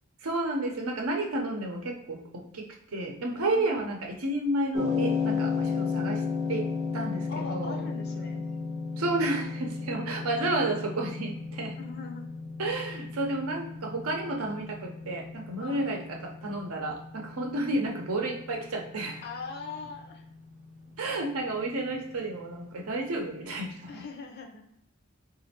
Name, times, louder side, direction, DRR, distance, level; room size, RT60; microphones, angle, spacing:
voice 1, 0.2-7.8 9.0-11.8 12.6-19.2 21.0-24.0, right 2 dB, 85° right, 2 dB, 0.7 m, -31 dB
voice 2, 3.2-3.9 7.3-8.4 11.8-12.3 15.6-15.9 19.2-20.2 23.9-24.6, left 4 dB, 50° left, 3 dB, 0.5 m, -41 dB
sound 1, 4.7-23.0, left 5 dB, 35° right, 0.5 m, -35 dB
4.0 x 2.5 x 2.8 m, 0.81 s
head